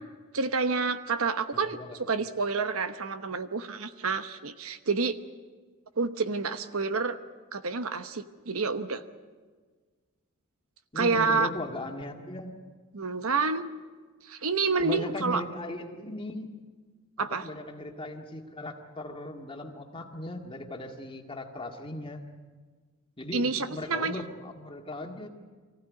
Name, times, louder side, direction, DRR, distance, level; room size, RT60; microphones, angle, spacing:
voice 1, 0.3-1.8 2.1-5.2 6.0-7.2 7.5-9.0 10.9-11.5 12.9-13.7 14.2-15.4 17.2-17.5 23.3-24.2, right 4 dB, 70° right, 10 dB, 1.0 m, -28 dB
voice 2, 1.6-2.0 10.9-12.6 14.8-16.6 17.2-22.2 23.2-25.3, left 1 dB, 25° left, 2 dB, 2.0 m, -38 dB
24.0 x 15.5 x 9.5 m, 1.5 s
head